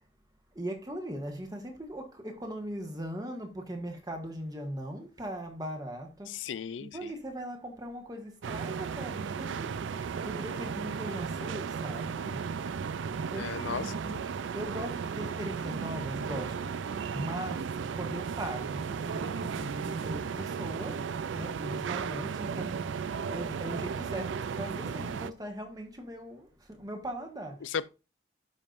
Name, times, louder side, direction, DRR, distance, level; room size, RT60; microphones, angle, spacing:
voice 1, 0.5-6.4 6.8-12.5 13.1-27.7, right 1 dB, 20° right, 1.5 m, -40 dB
voice 2, 6.3-7.1 13.3-13.9 27.6-27.9, left 7 dB, 85° left, 0.4 m, -35 dB
sound 1, 8.4-25.3, right 6 dB, 85° right, 0.4 m, -35 dB
12.0 x 5.4 x 2.5 m
head